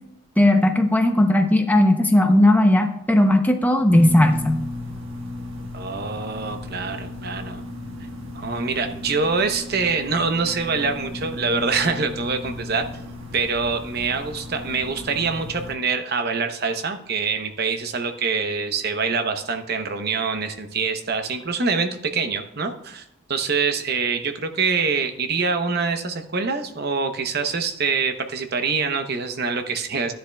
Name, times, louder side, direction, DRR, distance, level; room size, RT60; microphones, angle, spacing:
voice 1, 0.4-4.6, left 1 dB, 10° left, 5 dB, 0.7 m, -17 dB
sound 1, 3.9-15.8, left 1 dB, 70° right, 1.4 m, -35 dB
voice 2, 5.7-7.6 8.3-12.8 13.3-30.1, right 4 dB, 50° right, 6 dB, 0.9 m, -25 dB
14.0 x 10.0 x 2.3 m, 0.81 s
head